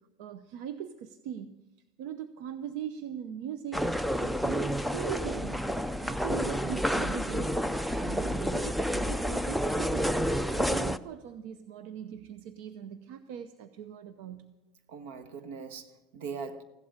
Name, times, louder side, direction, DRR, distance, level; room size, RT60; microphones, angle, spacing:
voice 1, 0.2-1.6 2.0-3.9 4.2-7.6 8.0-10.2 10.5-14.5, right 9 dB, 75° right, 0.8 m, -40 dB
sound 1, 3.7-11.0, equal, ahead, 0.4 m, -29 dB
voice 2, 14.9-16.6, right 5 dB, 90° right, 1.3 m, -40 dB
15.5 x 11.5 x 6.6 m
cardioid pair, 145°, 0 cm